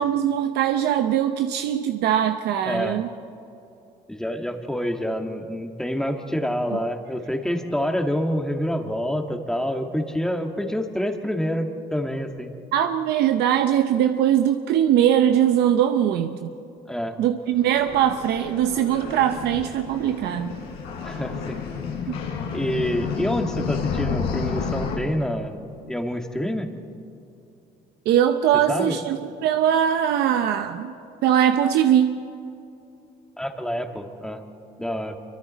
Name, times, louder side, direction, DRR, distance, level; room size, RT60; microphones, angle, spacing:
voice 1, 0.0-3.1 6.7-6.8 12.7-16.5 17.2-20.5 22.1-22.2 28.1-30.9 31.2-32.2, right 10 dB, 80° right, 7 dB, 0.8 m, -21 dB
voice 2, 2.7-3.0 4.1-12.5 16.9-17.2 21.0-21.6 22.5-25.6 25.9-26.7 28.7-29.0 33.4-34.4 34.8-35.2, equal, 5° left, 4 dB, 1.8 m, -27 dB
sound 1, 17.4-25.0, left 6 dB, 85° left, 3.9 m, -31 dB
26.0 x 24.0 x 4.2 m, 2.7 s
cardioid pair, 110°, 17 cm